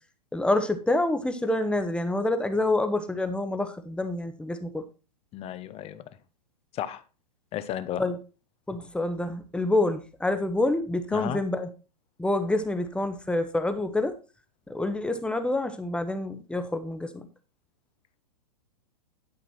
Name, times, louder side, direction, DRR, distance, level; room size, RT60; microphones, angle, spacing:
voice 1, 0.3-4.8 8.0-8.2 8.7-11.7 12.2-14.2 14.7-17.3, left 2 dB, 5° left, 1.2 m, -27 dB
voice 2, 5.3-6.0 6.7-7.0 7.5-8.0 11.1-11.4, left 11 dB, 30° left, 1.0 m, -33 dB
11.5 x 5.9 x 4.4 m
hypercardioid pair, 115°, 21 cm